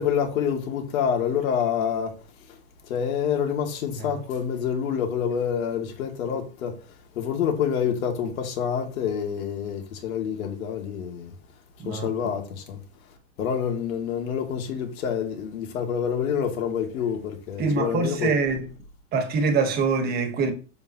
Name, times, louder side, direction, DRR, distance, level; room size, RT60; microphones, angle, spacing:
voice 1, 0.0-2.1 2.5-2.6 2.9-6.8 7.1-11.3 11.8-12.8 13.4-18.3, left 8 dB, 85° left, 2.6 m, -27 dB
voice 2, 17.6-18.7 19.1-20.5, right 4 dB, 25° right, 1.4 m, -24 dB
7.7 x 7.2 x 3.0 m
supercardioid pair, 165°, 41 cm